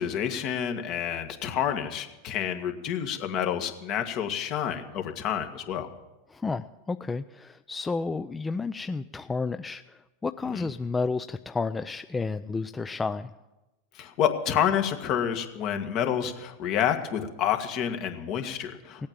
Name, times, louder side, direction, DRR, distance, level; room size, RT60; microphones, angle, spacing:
voice 1, 0.0-5.9 10.5-10.7 14.0-19.1, left 9 dB, 50° left, 6 dB, 1.9 m, -29 dB
voice 2, 6.3-13.3 19.0-19.1, left 4 dB, 15° left, 11 dB, 0.4 m, -31 dB
17.0 x 8.6 x 7.5 m, 1.1 s
hypercardioid pair, 100°, 0 cm